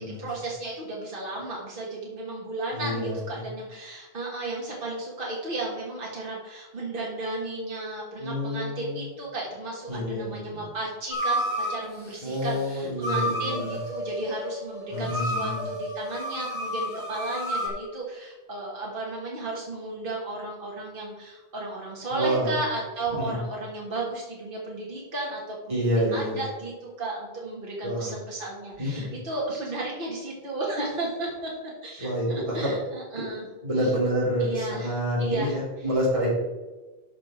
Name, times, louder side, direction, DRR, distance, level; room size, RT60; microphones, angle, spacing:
voice 1, 0.0-32.1 32.5-33.5 33.8-33.9 34.4-35.6, right 2 dB, 55° right, -4 dB, 1.8 m, -34 dB
voice 2, 2.7-3.5 8.2-9.1 9.9-10.7 12.2-13.8 14.9-15.6 22.1-22.5 23.1-23.4 25.7-26.4 27.8-28.1 28.8-29.2 32.0-32.7 33.6-36.3, equal, 30° right, -6 dB, 3.5 m, -28 dB
sound 1, 11.1-11.8 13.0-17.7, equal, 25° left, 2.4 m, -30 dB
12.5 x 5.9 x 4.4 m, 1.2 s
omnidirectional pair, 1.1 m